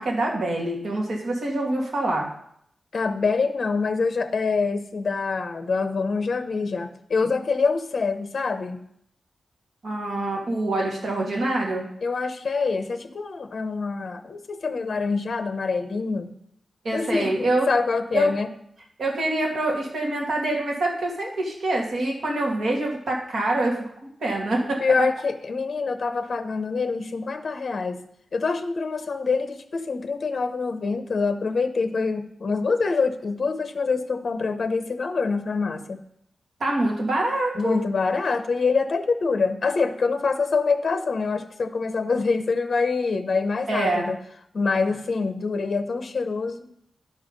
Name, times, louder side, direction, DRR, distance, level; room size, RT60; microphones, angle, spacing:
voice 1, 0.0-2.3 9.8-11.9 16.8-17.7 18.1-18.3 19.0-23.9 24.2-25.1 36.6-37.8 43.7-44.0, right 2 dB, 60° right, -1 dB, 2.3 m, -25 dB
voice 2, 2.9-8.8 12.0-16.3 16.9-18.5 24.8-28.0 28.3-36.0 37.5-44.2 44.5-46.7, left 4 dB, 50° left, 8 dB, 0.7 m, -25 dB
11.0 x 5.5 x 5.3 m, 0.71 s
wide cardioid pair, 145°, 0 cm